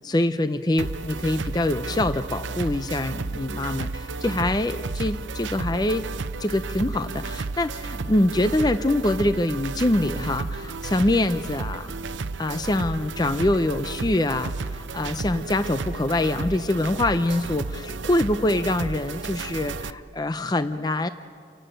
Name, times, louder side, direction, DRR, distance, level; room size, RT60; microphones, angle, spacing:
voice 1, 0.0-6.1 6.4-11.9 12.4-21.1, left 1 dB, 20° left, 11 dB, 0.5 m, -24 dB
sound 1, 0.8-19.9, right 3 dB, 85° right, 0.7 m, -32 dB
30.0 x 17.5 x 9.0 m, 2.2 s
head